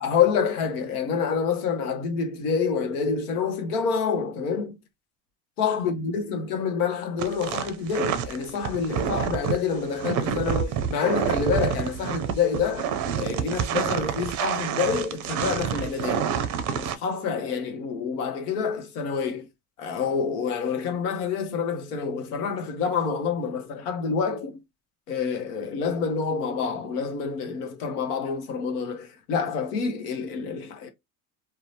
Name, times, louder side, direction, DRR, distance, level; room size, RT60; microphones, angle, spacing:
voice 1, 0.0-4.8 5.6-12.9 13.2-16.3 16.7-19.5 19.8-24.6 25.1-30.9, left 6 dB, 80° left, 0.8 m, -27 dB
sound 1, 7.2-17.0, right 8 dB, 40° right, 0.5 m, -28 dB
2.7 x 2.1 x 2.7 m
hypercardioid pair, 90°, 45 cm